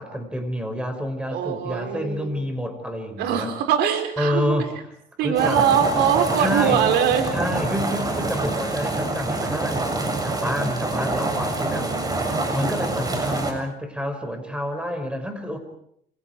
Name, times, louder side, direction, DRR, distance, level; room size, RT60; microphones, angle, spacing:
voice 1, 0.0-3.5 4.2-4.7 5.2-5.6 6.4-6.8 7.3-11.9 12.5-15.6, equal, 5° right, 6 dB, 6.2 m, -28 dB
voice 2, 1.3-2.4 3.2-4.5 5.2-7.3 11.7-12.3, right 8 dB, 85° right, 5 dB, 4.9 m, -22 dB
sound 1, 5.3-13.5, right 2 dB, 20° right, 7.3 m, -26 dB
29.5 x 27.0 x 4.9 m, 0.70 s
cardioid pair, 110°, 17 cm